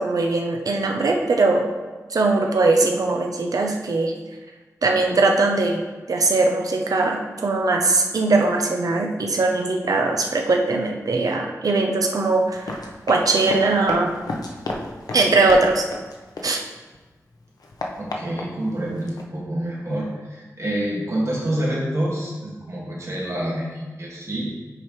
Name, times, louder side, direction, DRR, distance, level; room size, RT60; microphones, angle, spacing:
voice 1, 0.0-1.7 2.1-4.1 4.8-5.8 6.1-14.1 15.1-15.9 16.4-16.6, right 3 dB, 70° right, 2 dB, 0.7 m, -20 dB
Run, 12.5-17.0 17.3-19.2, left 2 dB, 85° left, 0.8 m, -33 dB
voice 2, 18.0-24.5, right 1 dB, 50° right, -4 dB, 1.9 m, -27 dB
8.6 x 4.9 x 3.1 m, 1.3 s
wide cardioid pair, 105°, 6 cm